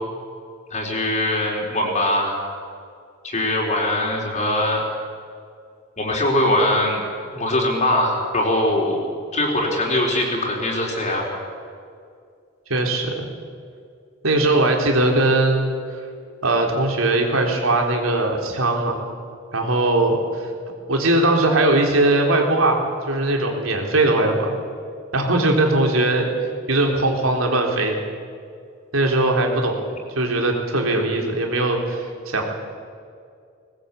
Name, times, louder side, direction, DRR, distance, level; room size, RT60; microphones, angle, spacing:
voice 1, 0.7-2.4 3.2-4.8 6.0-7.0 7.3-9.1 9.3-11.3, left 1 dB, 35° left, -2 dB, 4.3 m, -21 dB
voice 2, 12.7-13.3 14.2-15.7 16.4-19.0 19.5-20.4 20.9-24.6 25.1-26.3 26.7-28.0 28.9-29.7 30.2-32.4, right 2 dB, 90° right, 2 dB, 3.8 m, -20 dB
20.0 x 20.0 x 8.5 m, 2.2 s
head